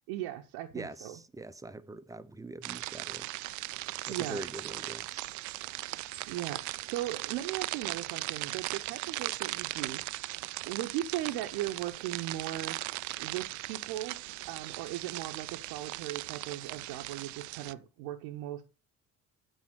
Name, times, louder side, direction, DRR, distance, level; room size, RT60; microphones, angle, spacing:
voice 1, 0.1-1.1 3.8-4.4 6.3-10.4 10.7-12.8 13.2-14.2 14.5-18.6, right 13 dB, 65° right, 0.9 m, -38 dB
voice 2, 0.7-3.3 4.0-5.3, right 2 dB, 10° right, 0.7 m, -43 dB
sound 1, 2.6-17.7, right 19 dB, 45° right, 0.4 m, -38 dB
9.0 x 5.0 x 6.6 m
figure-of-eight pair, 50°, 42 cm